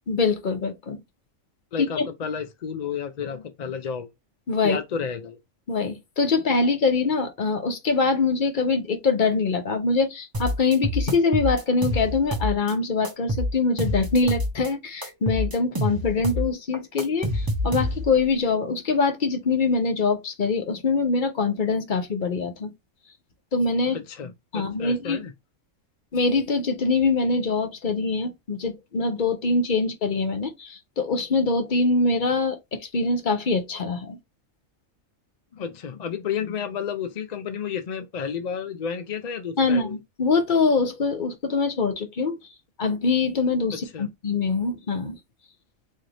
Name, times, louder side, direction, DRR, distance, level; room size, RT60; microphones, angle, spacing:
voice 1, 0.1-1.0 1.8-2.1 4.5-4.8 5.7-22.7 23.5-24.0 24.5-25.2 26.1-34.2 39.6-42.4 42.8-45.2, left 4 dB, 40° left, 0.8 m, -24 dB
voice 2, 1.7-4.1 4.6-5.4 23.9-25.3 35.5-40.0 43.9-44.1, left 7 dB, 65° left, 0.4 m, -31 dB
sound 1, 10.3-12.7 13.0-14.7 15.0-18.2, left 1 dB, 25° right, 0.5 m, -27 dB
3.2 x 2.8 x 3.8 m
omnidirectional pair, 1.4 m